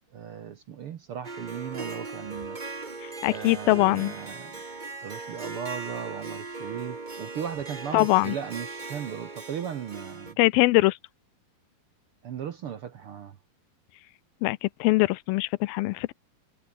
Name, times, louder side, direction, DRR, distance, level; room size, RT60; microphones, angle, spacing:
voice 1, 0.1-2.6 3.3-4.6 5.0-10.4 12.2-13.4, right 8 dB, 70° right, 1.3 m, -37 dB
Harp, 1.2-10.3, right 3 dB, 45° right, 0.5 m, -39 dB
voice 2, 3.0-4.1 7.9-8.4 10.4-11.0 14.4-16.1, left 21 dB, 85° left, 2.4 m, -22 dB
omnidirectional pair, 4.2 m